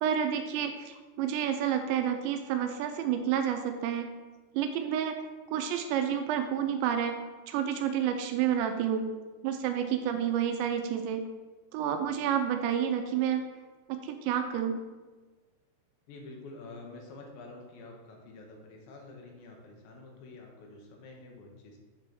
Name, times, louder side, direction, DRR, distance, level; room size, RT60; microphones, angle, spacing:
voice 1, 0.0-4.1 4.5-5.2 5.5-7.2 7.5-9.1 9.4-11.3 11.7-13.5 13.9-14.8, right 9 dB, 85° right, 6 dB, 2.8 m, -29 dB
voice 2, 16.1-21.8, left 3 dB, 80° left, 0 dB, 3.4 m, -48 dB
8.8 x 3.4 x 6.0 m, 1.3 s
omnidirectional pair, 5.1 m